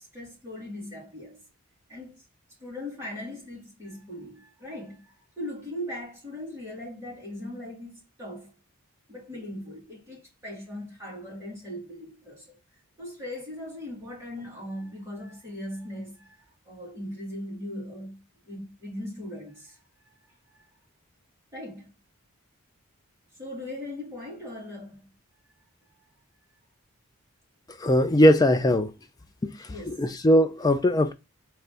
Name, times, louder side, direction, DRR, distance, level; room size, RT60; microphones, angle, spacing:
voice 1, 0.0-1.4 1.9-2.2 2.6-8.6 9.1-12.6 13.0-20.1 20.5-20.7 21.5-21.9 23.4-25.1 25.8-26.0 29.7-30.0, left 1 dB, 15° right, 2.0 m, -39 dB
voice 2, 27.8-28.9 29.4-31.1, equal, 15° left, 0.3 m, -20 dB
3.9 x 3.1 x 3.4 m
head